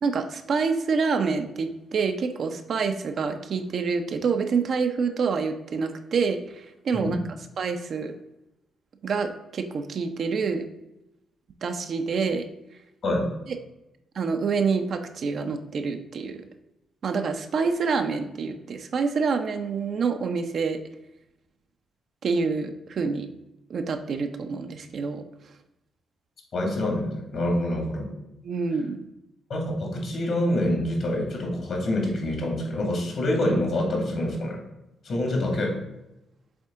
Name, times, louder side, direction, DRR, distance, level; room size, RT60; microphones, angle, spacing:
voice 1, 0.0-7.2 7.6-8.1 9.0-10.7 11.6-12.5 14.1-16.4 17.0-20.8 22.2-23.3 23.7-25.2 28.4-29.0, right 5 dB, 60° right, 6 dB, 0.6 m, -27 dB
voice 2, 26.5-28.1 29.5-34.6 35.0-35.7, left 1 dB, 65° left, 1 dB, 2.1 m, -26 dB
7.1 x 3.6 x 3.6 m, 0.91 s
supercardioid pair, 55°, 0 cm